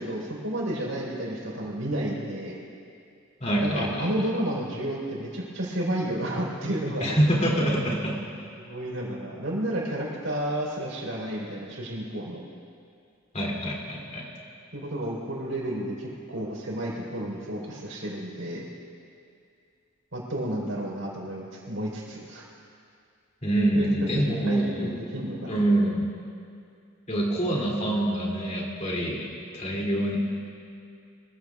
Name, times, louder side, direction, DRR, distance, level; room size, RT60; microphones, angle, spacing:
voice 1, 0.0-2.6 3.6-7.1 8.6-12.4 14.7-18.7 20.1-22.4 23.7-25.6, right 1 dB, 85° right, -4 dB, 4.2 m, -31 dB
voice 2, 3.4-4.1 7.0-8.2 13.3-14.2 23.4-24.9 25.5-26.1 27.1-29.3 29.5-30.2, right 1 dB, 35° left, -3 dB, 2.8 m, -25 dB
24.5 x 15.5 x 2.4 m, 2.4 s
head